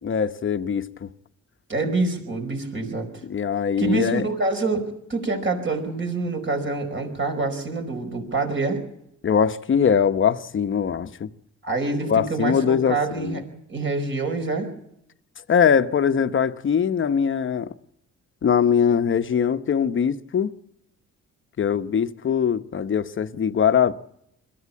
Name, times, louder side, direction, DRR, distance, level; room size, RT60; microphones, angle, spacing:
voice 1, 0.0-1.1 3.2-4.3 9.2-11.3 12.0-13.4 15.5-17.7 18.4-20.5 21.6-23.9, left 7 dB, 40° left, 0.9 m, -22 dB
voice 2, 1.7-3.1 3.8-8.8 11.6-13.4 13.7-14.7, right 3 dB, 40° right, 5.1 m, -26 dB
22.0 x 14.5 x 8.6 m
cardioid pair, 90°, 30 cm